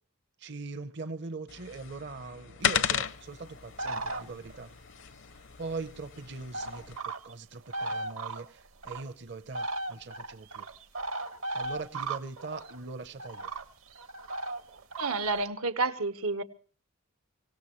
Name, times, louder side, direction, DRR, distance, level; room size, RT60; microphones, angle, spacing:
voice 1, 0.4-4.7 5.3-7.0 7.2-10.7 11.5-13.5, right 3 dB, 50° right, 0.8 m, -41 dB
sound 1, 1.5-7.0, left 8 dB, 55° left, 0.6 m, -35 dB
sound 2, 3.8-4.6 6.0-6.1 6.5-7.3 7.7-9.0 9.5-12.8 13.2-15.4, right 2 dB, 70° right, 1.2 m, -36 dB
voice 2, 15.0-16.4, right 3 dB, 85° right, 1.2 m, -29 dB
25.0 x 17.5 x 3.1 m
head